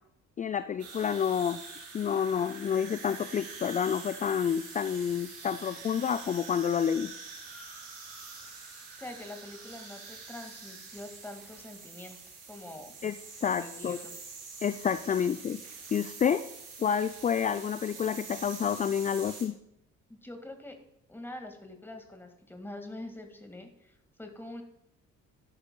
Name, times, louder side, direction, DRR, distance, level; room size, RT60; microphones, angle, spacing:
voice 1, 0.4-1.6 1.9-7.1 13.0-13.2 13.4-14.0 14.6-15.6 15.9-16.4 16.8-19.5, left 8 dB, 20° left, 12 dB, 0.4 m, -29 dB
sound 1, 0.8-19.4, right 4 dB, 80° right, 2.4 m, -46 dB
voice 2, 8.9-12.2 12.5-12.9 13.4-14.1 20.1-20.8 21.1-24.6, left 1 dB, 5° left, 5 dB, 1.9 m, -44 dB
12.0 x 11.0 x 2.3 m, 0.80 s
figure-of-eight pair, 45°, 39 cm